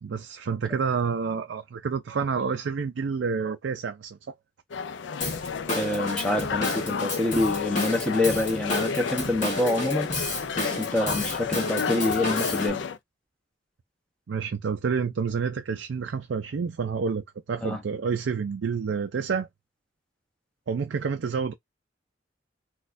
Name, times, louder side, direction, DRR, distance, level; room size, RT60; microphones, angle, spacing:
voice 1, 0.0-4.2 14.3-19.5 20.7-21.5, right 5 dB, 80° right, 0.4 m, -29 dB
sound 1, 4.7-13.0, left 6 dB, 75° left, 0.4 m, -31 dB
Drum kit / Drum, 5.2-12.7, left 2 dB, 45° left, 1.5 m, -32 dB
voice 2, 5.7-10.1 10.6-12.8 17.6-17.8, left 1 dB, 5° left, 0.9 m, -26 dB
4.0 x 2.3 x 2.6 m
head